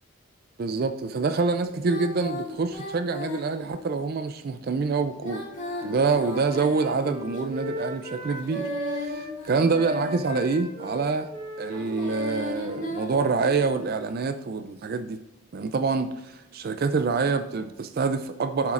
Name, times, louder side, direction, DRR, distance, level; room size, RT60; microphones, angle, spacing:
voice 1, 0.6-5.4 5.8-11.3 11.6-15.2 15.5-18.7, right 4 dB, 45° right, 10 dB, 0.4 m, -26 dB
Female singing, 1.8-4.0 5.1-7.4 8.2-10.4 11.6-13.9, left 2 dB, 35° left, 2.9 m, -37 dB
Wind instrument woodwind instrument, 5.4-9.3 9.7-14.1, equal, 25° right, 1.7 m, -38 dB
12.0 x 7.1 x 2.5 m, 1.1 s
head